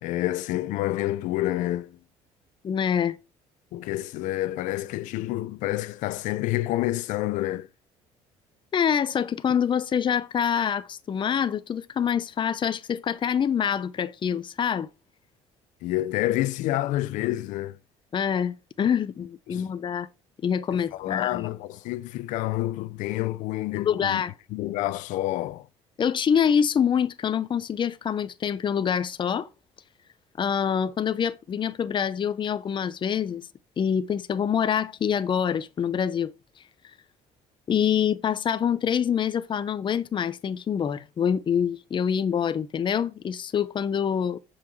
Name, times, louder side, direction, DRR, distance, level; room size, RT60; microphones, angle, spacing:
voice 1, 0.0-2.0 3.7-7.7 15.8-17.8 19.5-19.7 20.7-24.2 24.5-25.7, left 15 dB, 80° left, 0.7 m, -28 dB
voice 2, 2.6-3.2 8.7-14.9 18.1-20.1 20.4-21.5 23.7-24.3 26.0-29.5 30.4-33.4 33.8-36.3 37.7-44.4, left 8 dB, 40° left, 0.8 m, -25 dB
7.3 x 5.8 x 6.3 m
cardioid pair, 100°, 13 cm